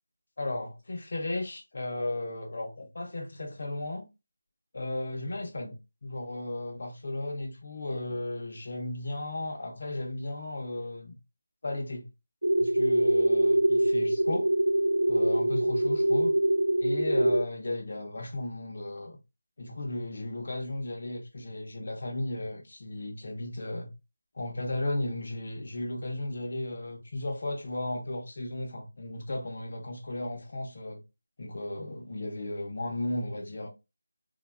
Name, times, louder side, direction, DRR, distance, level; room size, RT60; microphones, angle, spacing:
voice 1, 0.4-4.1 4.7-11.2 11.6-12.1 12.6-14.5 15.1-16.4 16.8-19.2 19.6-23.9 24.3-31.0 31.4-33.7, left 2 dB, 30° left, 0.3 m, -35 dB
sound 1, 12.4-17.4, right 1 dB, 65° right, 0.7 m, -24 dB
3.2 x 2.0 x 2.2 m
figure-of-eight pair, 180°, 0 cm